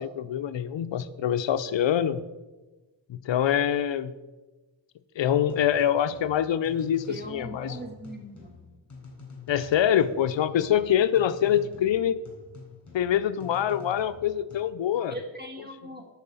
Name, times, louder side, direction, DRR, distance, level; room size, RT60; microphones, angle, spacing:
voice 1, 0.0-2.2 3.1-4.1 5.2-7.8 8.2-8.3 9.5-12.2 12.9-15.1, left 10 dB, 75° left, 12 dB, 0.6 m, -25 dB
sound 1, 5.3-14.6, left 4 dB, 40° left, 3.9 m, -48 dB
voice 2, 7.1-8.6 15.1-16.1, right 1 dB, 20° right, 2 dB, 1.9 m, -40 dB
10.5 x 4.8 x 6.9 m, 1.2 s
wide cardioid pair, 120°, 45 cm